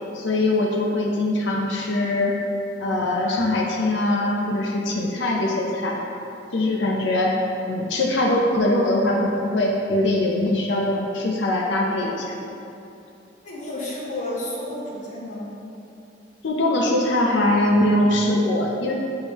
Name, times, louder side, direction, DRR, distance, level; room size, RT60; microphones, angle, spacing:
voice 1, 0.1-2.4 2.8-6.0 6.5-7.4 7.7-12.3 16.4-18.9, left 1 dB, 70° left, -1 dB, 0.6 m, -22 dB
voice 2, 13.4-15.5, left 1 dB, 40° left, -7 dB, 1.0 m, -31 dB
8.7 x 3.7 x 3.0 m, 2.7 s
head